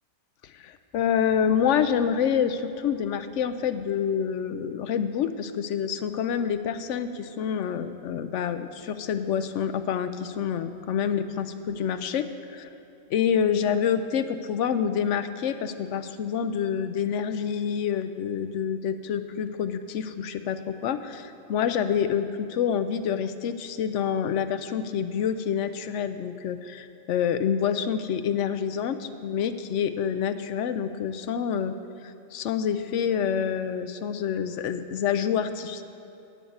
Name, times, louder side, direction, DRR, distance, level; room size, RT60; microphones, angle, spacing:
voice 1, 0.4-12.7 13.1-31.8 32.0-35.8, left 8 dB, 70° left, 10 dB, 0.9 m, -27 dB
9.4 x 7.0 x 7.2 m, 2.7 s
omnidirectional pair, 1.4 m